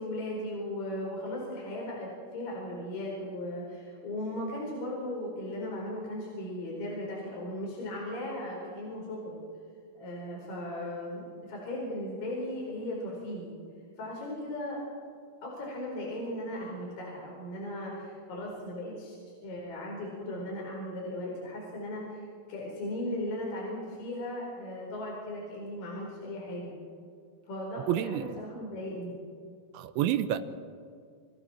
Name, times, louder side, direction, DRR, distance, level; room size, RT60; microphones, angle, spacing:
voice 1, 0.0-9.4 10.0-13.6 14.0-14.8 15.4-19.2 19.4-26.7 27.5-29.2, left 1 dB, 45° left, -3 dB, 5.9 m, -37 dB
voice 2, 27.9-28.3 29.7-30.4, right 12 dB, 75° right, 10 dB, 3.0 m, -28 dB
29.5 x 25.0 x 4.4 m, 2.3 s
omnidirectional pair, 5.8 m